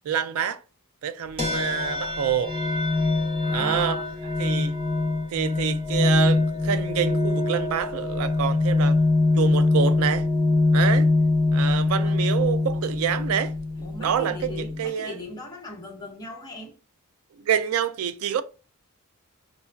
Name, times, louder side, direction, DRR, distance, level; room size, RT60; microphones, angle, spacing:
voice 1, 0.0-0.6 1.0-2.6 3.5-4.0 4.4-4.7 5.3-9.0 9.3-10.3 10.7-11.1 11.5-13.5 14.0-15.2 17.4-18.4, right 8 dB, 70° right, 0.3 m, -27 dB
sound 1, 1.4-14.9, left 2 dB, 25° right, 1.2 m, -23 dB
voice 2, 3.4-4.0 11.9-12.2 13.8-16.7, left 1 dB, 20° left, 0.9 m, -39 dB
5.9 x 2.3 x 2.2 m
head